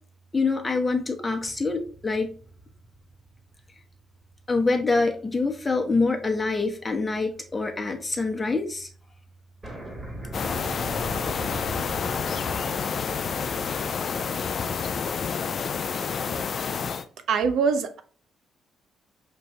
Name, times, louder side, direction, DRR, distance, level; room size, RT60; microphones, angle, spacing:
voice 1, 0.3-2.3 4.5-8.9, left 3 dB, 20° left, 0.9 m, -25 dB
sound 1, 1.4-4.0 4.5-4.6 6.1-6.4 6.7-8.1 8.4-8.5 8.7-8.8 9.1-9.2 9.6-16.3, right 1 dB, 20° right, 1.5 m, -40 dB
sound 2, 10.3-17.0, left 6 dB, 50° left, 0.4 m, -29 dB
voice 2, 17.3-18.0, right 5 dB, 75° right, 0.5 m, -24 dB
5.0 x 2.6 x 3.3 m
cardioid pair, 90°, 0 cm